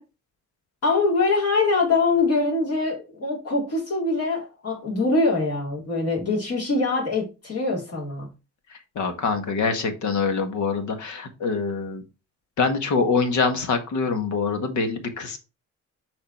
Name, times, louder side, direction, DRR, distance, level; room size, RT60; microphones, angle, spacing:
voice 1, 0.8-8.3, left 3 dB, 50° left, 3.8 m, -23 dB
voice 2, 9.0-12.0 12.6-15.4, left 4 dB, 75° left, 1.8 m, -24 dB
6.6 x 4.4 x 4.5 m
cardioid pair, 90°, 30 cm